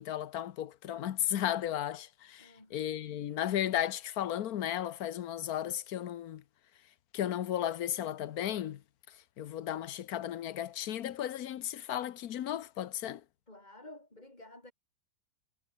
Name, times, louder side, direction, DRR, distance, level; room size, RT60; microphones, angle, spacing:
voice 1, 0.0-6.4 7.1-8.8 9.4-13.2, left 11 dB, 70° left, 1.3 m, -34 dB
voice 2, 2.4-2.7 13.5-14.7, left 1 dB, 25° left, 4.3 m, -52 dB
omnidirectional pair, 1.7 m